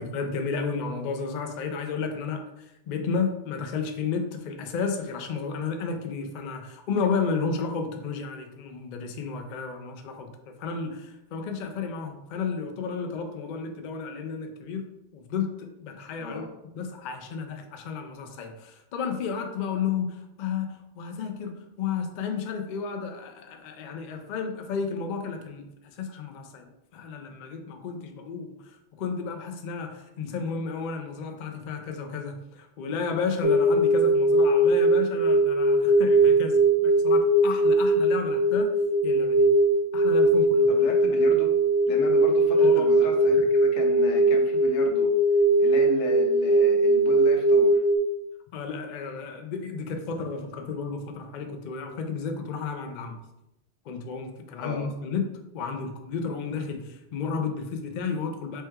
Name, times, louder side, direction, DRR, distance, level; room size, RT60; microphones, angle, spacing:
voice 1, 0.0-14.9 15.1-16.5 16.8-38.8 39.0-39.5 39.9-40.7 42.6-43.0 43.3-43.4 48.5-53.2 53.9-55.3 55.5-58.6, left 5 dB, 60° left, 5 dB, 0.5 m, -32 dB
voice 2, 16.2-16.5 40.7-41.5 41.9-45.1 45.6-47.8 54.6-54.9, left 3 dB, 85° left, 2 dB, 1.0 m, -34 dB
sound 1, 33.4-48.0, right 1 dB, 80° right, 0.9 m, -20 dB
4.3 x 3.1 x 2.3 m, 0.87 s
omnidirectional pair, 1.2 m